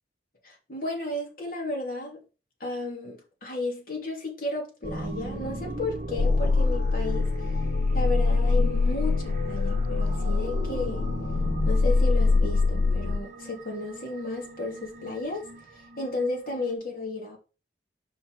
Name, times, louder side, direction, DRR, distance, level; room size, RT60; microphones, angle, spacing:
voice 1, 0.4-2.2 2.6-7.3 7.9-11.1 11.7-15.5 15.7-17.4, left 2 dB, 50° left, 2.7 m, -33 dB
sound 1, 4.8-16.7, right 2 dB, 40° right, 1.0 m, -38 dB
sound 2, 6.2-13.2, left 3 dB, 70° left, 0.4 m, -24 dB
5.6 x 5.3 x 4.8 m
head